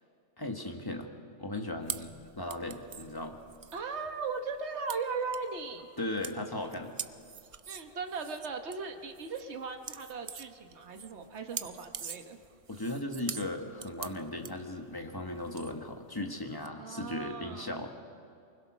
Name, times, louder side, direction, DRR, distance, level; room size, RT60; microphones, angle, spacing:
voice 1, 0.4-1.1 1.4-3.4 6.0-7.0 12.7-17.9, left 1 dB, 20° left, 4 dB, 1.6 m, -37 dB
sound 1, 1.8-16.7, right 6 dB, 45° right, 0.4 m, -45 dB
voice 2, 3.7-5.9 7.7-12.4 16.8-17.7, right 4 dB, 70° right, 5 dB, 1.5 m, -38 dB
24.0 x 20.5 x 6.2 m, 2.4 s
omnidirectional pair, 1.2 m